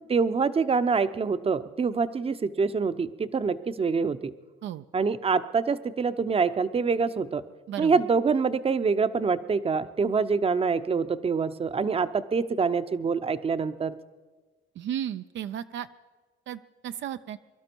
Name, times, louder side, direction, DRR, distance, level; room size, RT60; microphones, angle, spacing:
voice 1, 0.1-4.3 4.9-7.4 7.8-14.0, right 5 dB, 30° right, 12 dB, 0.7 m, -25 dB
voice 2, 7.7-8.0 14.8-15.9 16.5-17.4, right 10 dB, 70° right, 10 dB, 0.5 m, -34 dB
24.5 x 12.0 x 4.6 m, 1.3 s
cardioid pair, 90°, 20 cm